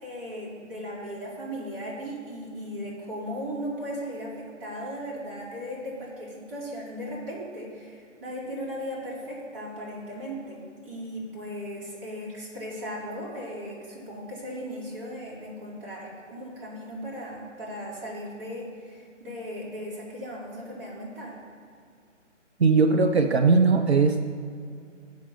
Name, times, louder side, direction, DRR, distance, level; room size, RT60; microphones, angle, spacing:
voice 1, 0.0-21.4, equal, 10° right, -7 dB, 1.2 m, -37 dB
voice 2, 22.6-24.2, right 4 dB, 60° right, 5 dB, 0.6 m, -19 dB
7.2 x 5.1 x 6.6 m, 2.3 s
figure-of-eight pair, 145°, 37 cm